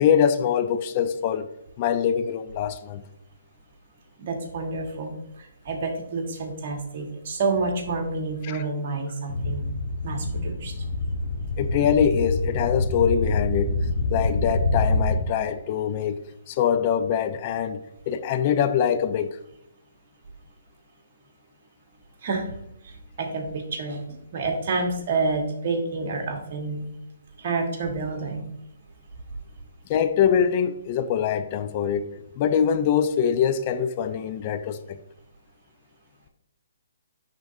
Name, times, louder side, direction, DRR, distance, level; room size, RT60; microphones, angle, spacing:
voice 1, 0.0-1.5 1.8-3.0 8.4-8.6 11.6-13.8 14.1-16.2 16.5-19.4 29.9-35.0, left 8 dB, 35° left, 0.4 m, -23 dB
voice 2, 4.2-9.7 10.0-10.7 22.2-22.5 22.8-26.9 27.4-28.5, right 3 dB, 50° right, 1.5 m, -29 dB
sound 1, 9.3-15.2, left 2 dB, 55° left, 1.1 m, -26 dB
10.5 x 3.8 x 2.7 m
hypercardioid pair, 140°, 0 cm